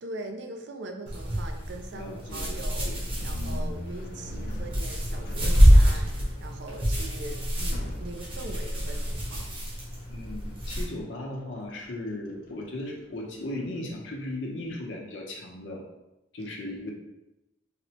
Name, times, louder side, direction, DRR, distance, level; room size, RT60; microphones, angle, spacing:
voice 1, 0.0-2.9 3.2-9.5, right 2 dB, 65° right, 5 dB, 0.4 m, -41 dB
sound 1, 1.1-10.9, equal, 30° right, 0.8 m, -25 dB
voice 2, 1.9-2.9 10.1-15.8 16.3-16.9, left 1 dB, 80° left, -1 dB, 0.7 m, -37 dB
sound 2, 3.0-14.1, left 1 dB, 50° left, 0.4 m, -42 dB
4.1 x 2.1 x 2.8 m, 0.93 s
head